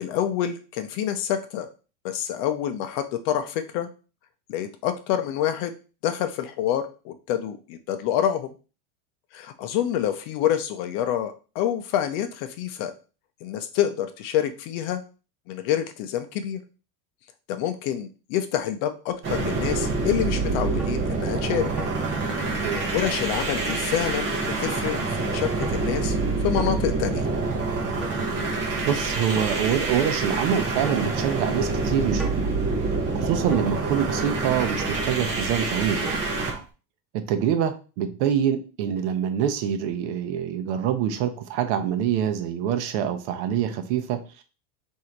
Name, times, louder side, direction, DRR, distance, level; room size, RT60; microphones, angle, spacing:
voice 1, 0.0-1.7 2.0-3.9 4.5-5.8 6.0-8.5 9.3-12.9 13.4-15.0 15.5-16.6 17.5-21.7 22.9-24.3 24.6-26.2 26.4-27.3, left 10 dB, 45° left, 8 dB, 0.6 m, -27 dB
sound 1, 19.2-36.6, right 3 dB, 25° right, 0.9 m, -26 dB
sound 2, 20.8-21.0 21.8-22.0 22.8-23.0 23.7-23.9 24.7-24.8 25.6-25.8 26.6-26.8 28.0-28.2 29.4-29.6 30.9-31.1 32.2-32.4 33.5-33.7 34.8-35.0 36.1-36.2, left 1 dB, ahead, 0.3 m, -37 dB
voice 2, 28.8-32.3 33.1-36.2 37.1-44.4, right 9 dB, 55° right, 7 dB, 0.7 m, -25 dB
3.8 x 2.7 x 4.5 m, 0.34 s
supercardioid pair, 165°, 40 cm